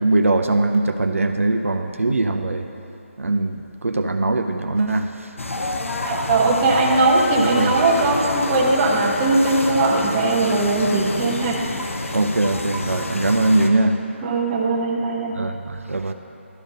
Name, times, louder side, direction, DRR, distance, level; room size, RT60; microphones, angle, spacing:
voice 1, 0.0-2.7 3.2-5.3 7.4-7.7 12.1-14.0 15.4-16.1, right 2 dB, 85° right, 6 dB, 0.5 m, -21 dB
sound 1, 5.4-13.7, left 2 dB, 80° left, 0.8 m, -28 dB
voice 2, 6.0-11.6 14.2-15.4, right 2 dB, 20° right, -3 dB, 1.0 m, -19 dB
11.5 x 5.0 x 5.3 m, 2.8 s
figure-of-eight pair, 155°, 7 cm